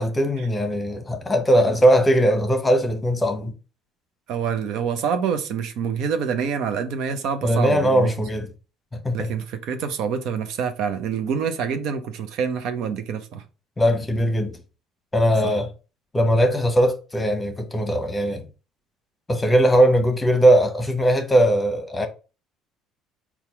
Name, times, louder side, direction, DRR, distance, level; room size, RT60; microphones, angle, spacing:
voice 1, 0.0-3.5 7.4-8.5 8.9-9.3 13.8-14.5 15.1-15.7 16.1-18.4 19.3-22.1, equal, 20° left, 1.0 m, -20 dB
voice 2, 4.3-8.1 9.1-13.4 15.4-15.5, right 7 dB, 65° right, 0.6 m, -26 dB
4.1 x 2.4 x 4.6 m
hypercardioid pair, 65°, 0 cm